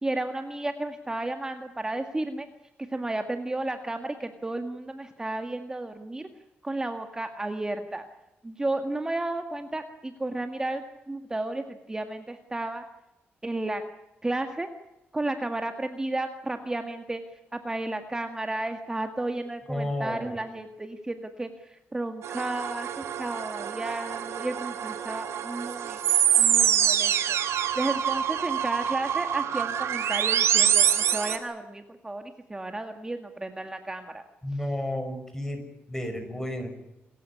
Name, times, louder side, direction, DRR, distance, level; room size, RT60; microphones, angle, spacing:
voice 1, 0.0-2.5 2.9-6.3 6.6-8.1 8.4-12.8 13.4-13.8 14.2-14.7 15.1-17.2 17.5-26.0 26.4-27.4 27.8-34.2, right 2 dB, 15° right, 6 dB, 1.8 m, -33 dB
voice 2, 19.7-20.3 34.4-35.6 35.9-36.7, left 1 dB, 10° left, 7 dB, 6.1 m, -32 dB
sound 1, 22.2-31.4, right 9 dB, 85° right, 2.4 m, -25 dB
28.0 x 15.0 x 9.8 m, 0.92 s
cardioid pair, 120°, 4 cm